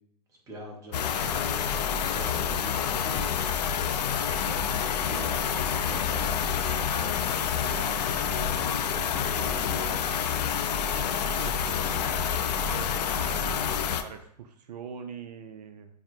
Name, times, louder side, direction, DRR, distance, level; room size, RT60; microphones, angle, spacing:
voice 1, 0.5-3.5 4.3-10.1, right 1 dB, 15° right, -2 dB, 1.0 m, -42 dB
sound 1, 0.9-14.0, left 8 dB, 75° left, 0.4 m, -28 dB
voice 2, 11.2-15.9, right 7 dB, 70° right, 7 dB, 0.5 m, -43 dB
5.6 x 2.1 x 3.1 m, 0.74 s
hypercardioid pair, 140°, 21 cm